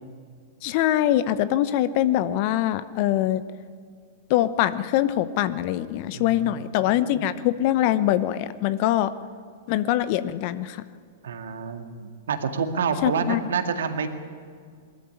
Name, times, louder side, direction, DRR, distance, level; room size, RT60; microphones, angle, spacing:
voice 1, 0.6-3.4 4.3-9.1 9.7-10.8 13.0-13.4, left 13 dB, 50° left, 14 dB, 0.9 m, -23 dB
voice 2, 6.1-7.3 11.2-14.1, right 6 dB, 75° right, 7 dB, 2.0 m, -29 dB
21.0 x 14.0 x 9.8 m, 2.1 s
hypercardioid pair, 105°, 0 cm